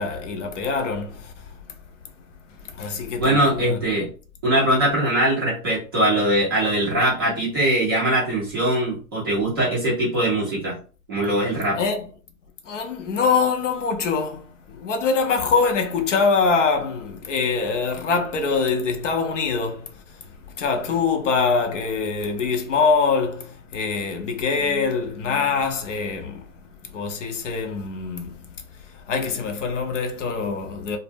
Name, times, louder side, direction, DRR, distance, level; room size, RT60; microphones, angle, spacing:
voice 1, 0.0-1.5 2.6-3.8 11.8-12.0 12.7-20.0 20.5-26.5 26.9-28.3 28.8-31.0, left 4 dB, 55° left, 0.6 m, -24 dB
voice 2, 3.2-4.1 4.4-10.7 11.1-11.8, right 1 dB, 15° right, 0.4 m, -21 dB
2.0 x 2.0 x 3.3 m
hypercardioid pair, 135°, 45 cm